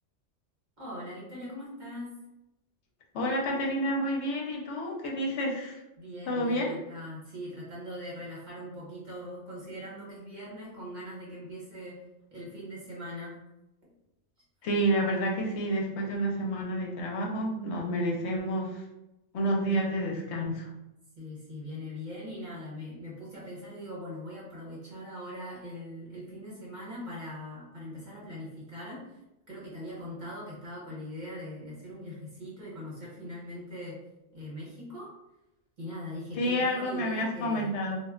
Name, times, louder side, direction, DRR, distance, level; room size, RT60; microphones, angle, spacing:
voice 1, 0.8-2.1 6.0-12.0 12.3-13.4 21.2-29.0 29.5-34.0 34.3-35.1 35.8-37.7, equal, 45° right, -6 dB, 1.1 m, -41 dB
voice 2, 3.1-5.8 6.3-6.7 14.6-18.8 19.3-20.7 36.4-38.0, equal, 75° left, 0 dB, 0.9 m, -29 dB
2.3 x 2.1 x 3.6 m, 0.93 s
omnidirectional pair, 1.2 m